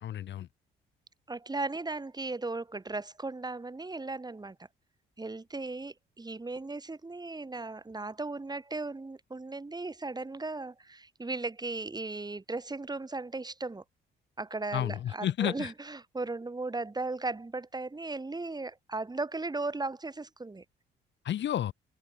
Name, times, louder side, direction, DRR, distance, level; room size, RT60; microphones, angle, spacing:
voice 1, 0.0-0.5 14.7-15.7 21.2-21.7, left 11 dB, 65° left, 1.4 m, -31 dB
voice 2, 1.3-4.6 5.2-13.8 14.4-20.6, right 3 dB, 20° right, 5.9 m, -36 dB
open air
cardioid pair, 90°, 20 cm